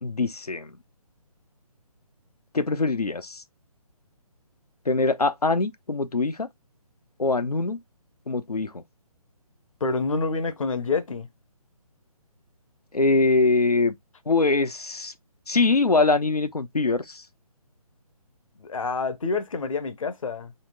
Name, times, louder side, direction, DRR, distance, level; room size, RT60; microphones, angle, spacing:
voice 1, 0.0-0.8 2.5-3.4 4.8-6.5 7.2-7.8 8.3-8.8 12.9-13.9 14.3-15.1 15.5-17.3, left 3 dB, 85° left, 1.0 m, -23 dB
voice 2, 9.8-11.3 18.6-20.5, left 4 dB, 60° left, 1.0 m, -27 dB
4.5 x 3.0 x 3.7 m
figure-of-eight pair, 145°, 19 cm